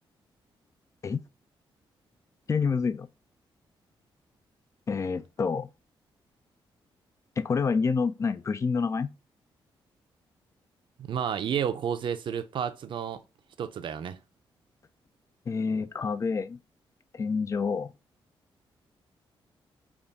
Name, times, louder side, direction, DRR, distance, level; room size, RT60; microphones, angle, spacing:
voice 1, 2.5-3.1 4.9-5.7 7.4-9.1 15.5-16.6 17.1-17.9, left 5 dB, 35° left, 0.4 m, -28 dB
voice 2, 11.0-13.2 13.6-14.2, right 8 dB, 60° right, 0.5 m, -31 dB
3.5 x 2.4 x 4.0 m
cardioid pair, 95°, 9 cm